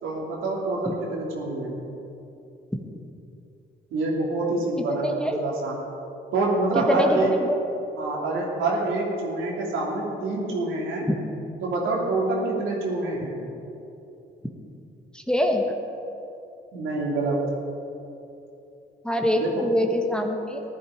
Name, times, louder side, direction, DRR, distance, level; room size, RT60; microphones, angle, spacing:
voice 1, 0.0-1.8 3.9-5.8 6.3-7.3 8.0-11.1 11.6-13.4 16.7-17.4 19.3-19.6, right 2 dB, 90° right, -3 dB, 3.0 m, -26 dB
voice 2, 4.9-5.4 6.7-7.6 15.3-15.6 19.0-20.6, equal, 5° left, 2 dB, 1.4 m, -24 dB
15.0 x 11.5 x 5.0 m, 2.8 s
cardioid pair, 90°, 20 cm